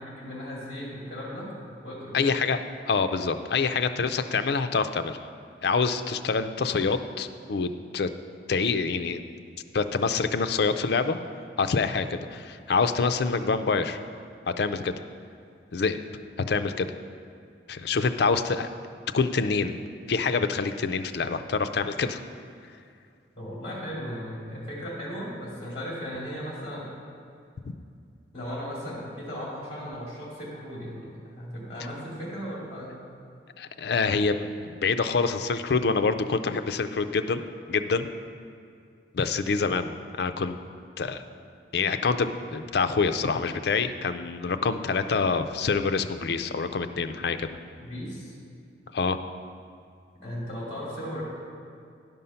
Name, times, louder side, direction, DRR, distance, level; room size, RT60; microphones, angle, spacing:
voice 1, 0.0-2.3 23.4-26.9 28.3-32.9 47.8-48.4 50.2-51.2, equal, 30° left, -5 dB, 2.3 m, -36 dB
voice 2, 2.1-2.6 2.9-5.2 5.6-8.1 8.5-9.2 9.7-11.2 11.6-14.0 14.6-15.0 15.7-16.0 16.5-16.9 17.7-18.7 19.1-19.8 20.1-22.2 33.6-37.4 37.7-38.1 39.1-40.6 41.0-41.2 41.7-47.5 48.9-49.2, left 4 dB, 60° left, 9 dB, 0.4 m, -26 dB
11.0 x 5.4 x 5.7 m, 2.3 s
head